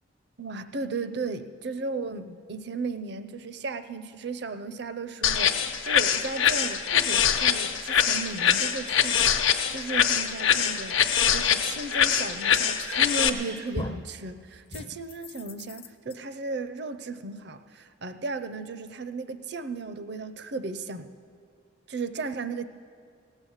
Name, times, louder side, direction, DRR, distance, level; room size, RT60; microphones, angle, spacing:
voice 1, 0.4-5.6 5.8-11.0 11.3-21.1 21.9-22.6, right 3 dB, 55° right, 11 dB, 0.6 m, -35 dB
sound 1, 5.2-13.3, left 8 dB, 75° left, 0.8 m, -23 dB
sound 2, 13.0-13.4 13.7-14.2 14.7-16.1, left 2 dB, 25° left, 0.5 m, -38 dB
17.0 x 9.0 x 7.2 m, 2.2 s
head